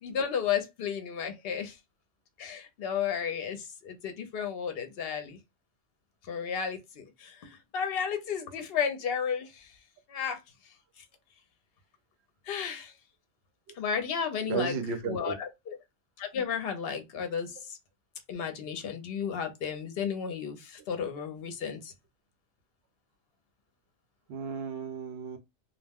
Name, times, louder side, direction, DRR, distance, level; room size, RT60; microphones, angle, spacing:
voice 1, 0.0-1.7 2.4-5.4 6.2-9.7 10.1-10.4 11.0-11.1 12.5-12.9 13.8-14.8 15.0-15.8 16.2-17.8 18.3-21.9, left 7 dB, 60° left, 0.8 m, -33 dB
voice 2, 14.5-15.4 24.3-25.4, right 6 dB, 65° right, 0.9 m, -34 dB
2.4 x 2.1 x 3.4 m
omnidirectional pair, 1.2 m